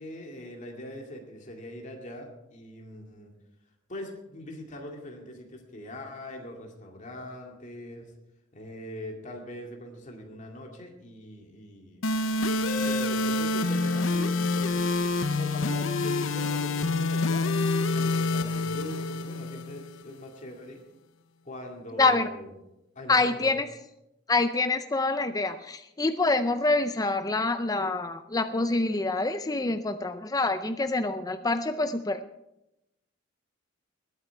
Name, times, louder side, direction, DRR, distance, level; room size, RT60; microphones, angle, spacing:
voice 1, 0.0-3.3 3.9-8.1 8.5-12.1 12.7-20.8 21.5-22.5 23.0-23.6, left 1 dB, 40° left, 1 dB, 2.3 m, -42 dB
sound 1, 12.0-20.0, left 3 dB, 85° left, 0.8 m, -27 dB
voice 2, 22.0-22.3 23.1-23.7 24.3-32.2, left 3 dB, 20° left, 9 dB, 0.5 m, -26 dB
20.5 x 8.8 x 4.6 m, 0.87 s
head